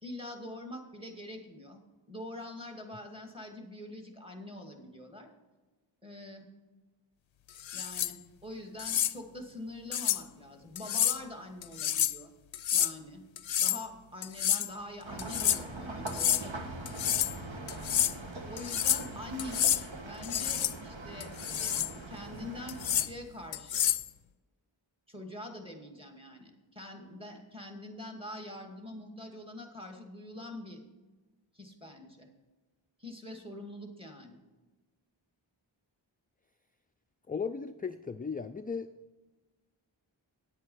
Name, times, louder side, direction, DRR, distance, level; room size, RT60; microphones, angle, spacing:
voice 1, 0.0-1.8 2.1-5.3 6.0-6.5 7.7-12.3 12.7-13.2 13.6-16.7 18.5-23.9 25.1-30.8 31.5-32.3 33.0-34.4, left 1 dB, 10° right, 2 dB, 2.1 m, -44 dB
sound 1, 7.6-8.1 8.8-9.1 9.9-10.2 10.8-11.2 11.6-12.2 12.5-12.9 13.4-13.8 14.2-14.7 15.2-15.6 16.1-16.4 16.9-17.3 17.7-18.1 18.6-19.1 19.4-19.8 20.2-20.7 21.2-21.9 22.7-23.1 23.5-24.1, left 10 dB, 70° left, 0.5 m, -29 dB
sound 2, 15.0-23.0, right 2 dB, 70° right, 1.4 m, -42 dB
voice 2, 37.3-38.9, left 5 dB, 20° left, 9 dB, 0.4 m, -36 dB
9.8 x 8.5 x 5.5 m, 1.2 s
wide cardioid pair, 50°, 48 cm